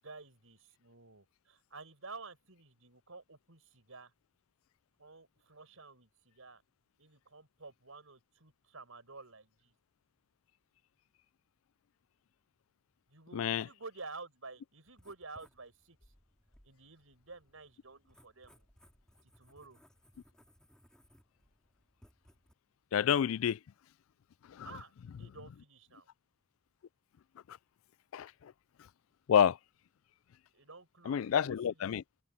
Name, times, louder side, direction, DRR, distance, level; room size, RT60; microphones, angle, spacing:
voice 1, 0.0-4.1 5.0-6.6 7.0-9.7 13.1-16.0 16.6-18.7 19.2-19.8 24.6-26.1 30.5-31.9, right 3 dB, 80° right, 5.4 m, -51 dB
voice 2, 13.3-13.6 22.9-23.6 24.5-24.7 27.5-27.6 28.1-28.5 29.3-29.6 31.1-32.0, left 8 dB, 80° left, 0.3 m, -29 dB
Writing, 14.9-22.5, equal, 5° left, 5.4 m, -65 dB
head